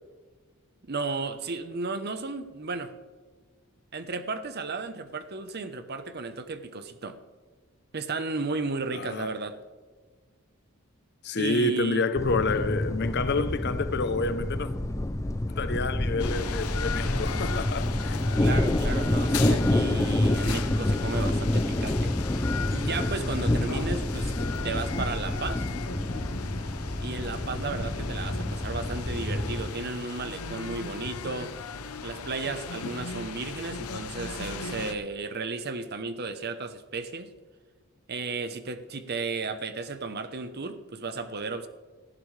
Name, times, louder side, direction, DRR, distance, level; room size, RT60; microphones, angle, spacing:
voice 1, 0.8-2.9 3.9-7.2 7.9-9.6 11.3-12.0 18.4-22.1 22.7-24.3 24.6-25.6 27.0-31.6 32.0-37.3 38.1-41.7, right 3 dB, 45° right, 0.9 m, -34 dB
voice 2, 8.9-9.3 11.2-14.7 15.5-18.2, left 3 dB, 50° left, 0.7 m, -28 dB
sound 1, 12.1-29.7, left 1 dB, 15° left, 0.5 m, -28 dB
sound 2, 16.2-34.9, left 4 dB, 90° left, 0.9 m, -37 dB
18.5 x 14.0 x 3.3 m
head